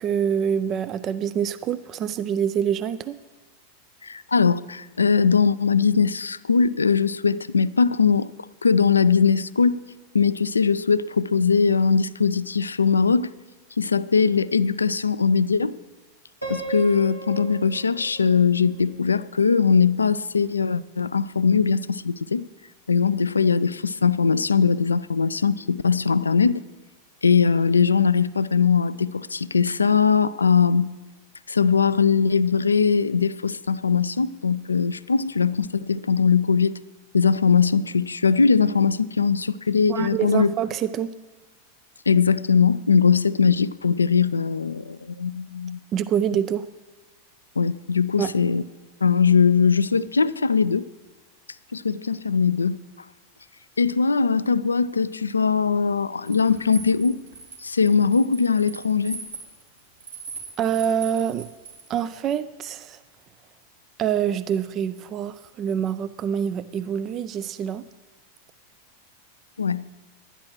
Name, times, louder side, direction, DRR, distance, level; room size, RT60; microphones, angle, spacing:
voice 1, 0.0-3.2 39.9-41.1 45.9-46.6 48.2-48.4 60.6-61.5 61.9-63.0 64.0-67.8, right 8 dB, 30° right, 0.4 m, -26 dB
voice 2, 4.0-8.3 8.6-9.8 10.1-13.3 13.8-15.8 16.5-22.4 22.9-26.6 27.2-30.9 31.5-36.8 37.1-40.5 42.1-45.8 47.6-48.6 49.0-50.9 51.7-52.8 53.8-57.2 57.6-59.2 69.6-69.8, left 5 dB, 75° left, 0.3 m, -20 dB
Piano, 16.4-19.4, right 5 dB, 90° right, 2.1 m, -37 dB
sound 1, 56.3-61.8, right 4 dB, 70° right, 2.9 m, -40 dB
11.0 x 10.0 x 6.2 m
figure-of-eight pair, 90°, 0 cm